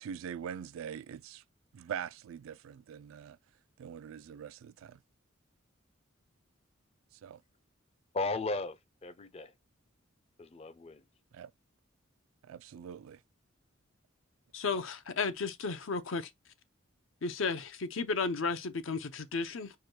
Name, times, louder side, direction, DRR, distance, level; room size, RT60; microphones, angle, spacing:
voice 1, 0.0-1.4 1.7-3.4 3.8-5.0 7.2-7.4 11.3-11.5 12.5-13.2, right 8 dB, 80° right, 0.3 m, -43 dB
voice 2, 8.1-9.5 10.4-11.0, left 3 dB, 30° left, 0.4 m, -36 dB
voice 3, 14.5-16.3 17.2-19.7, left 4 dB, 70° left, 0.6 m, -33 dB
4.8 x 2.2 x 4.5 m
head